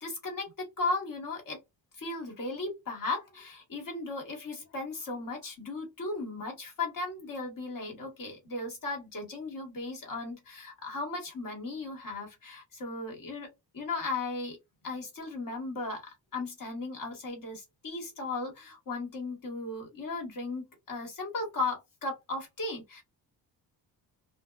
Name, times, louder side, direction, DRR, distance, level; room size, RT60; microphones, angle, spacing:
voice 1, 0.0-1.6 2.0-13.5 13.7-14.6 14.8-23.0, left 3 dB, 50° left, 1.5 m, -36 dB
2.4 x 2.2 x 2.3 m
cardioid pair, 80°, 43 cm